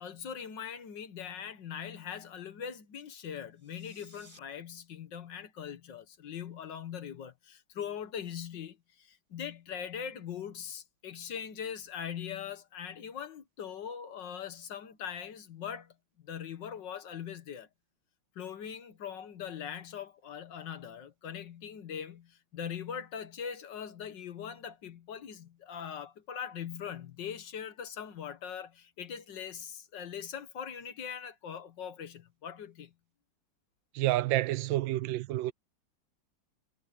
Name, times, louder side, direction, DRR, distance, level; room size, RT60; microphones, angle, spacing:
voice 1, 0.0-15.9 16.2-17.7 18.4-32.9, left 8 dB, 70° left, 2.0 m, -41 dB
sound 1, 3.5-4.4, equal, 25° right, 7.9 m, -57 dB
voice 2, 33.9-35.5, right 16 dB, 85° right, 1.3 m, -29 dB
omnidirectional pair, 2.0 m